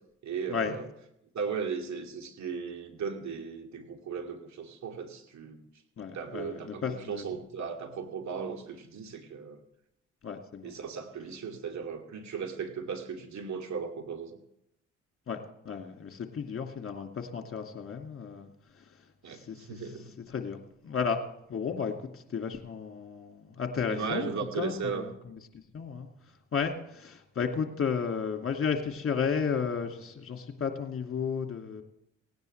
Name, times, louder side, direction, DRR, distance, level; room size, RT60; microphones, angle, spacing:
voice 1, 0.2-0.9 1.3-5.6 6.1-9.6 10.6-14.4 19.2-20.0 23.9-25.0, right 6 dB, 50° right, 3 dB, 2.5 m, -36 dB
voice 2, 6.0-7.3 10.2-10.7 15.3-15.4 15.7-18.5 19.3-19.8 20.3-20.6 20.8-21.2 21.5-25.1 25.7-26.1 26.5-31.8, left 6 dB, 40° left, 4 dB, 2.3 m, -33 dB
18.0 x 17.5 x 3.3 m, 0.79 s
hypercardioid pair, 45°, 35 cm